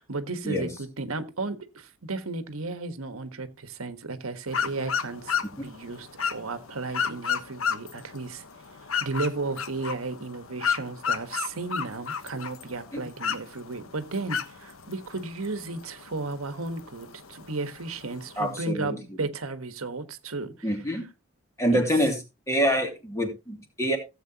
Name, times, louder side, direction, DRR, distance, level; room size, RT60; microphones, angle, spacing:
voice 1, 0.0-8.4 9.0-20.7 21.7-21.8, right 3 dB, 90° right, 1.4 m, -34 dB
sound 1, 4.5-18.6, left 7 dB, 85° left, 1.2 m, -34 dB
voice 2, 18.4-19.0 20.6-21.0 21.6-22.2 22.5-24.0, equal, 15° left, 2.6 m, -26 dB
16.0 x 7.9 x 2.9 m
head